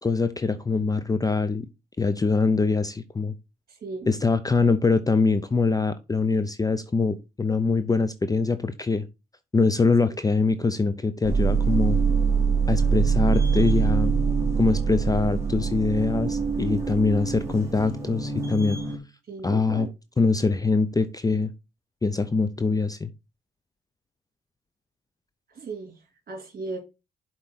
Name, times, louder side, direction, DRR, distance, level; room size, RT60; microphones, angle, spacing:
voice 1, 0.0-1.7 2.0-3.3 4.1-9.1 9.5-12.0 12.7-14.1 14.6-18.8 19.4-19.9 20.2-21.5 22.0-23.1, left 4 dB, 20° left, 0.5 m, -23 dB
voice 2, 3.7-4.1 19.3-19.9 25.5-25.9 26.3-26.8, right 3 dB, 45° right, 3.2 m, -36 dB
sound 1, 11.2-19.0, right 5 dB, 15° right, 2.2 m, -24 dB
7.3 x 4.4 x 4.0 m
cardioid pair, 90°, 20 cm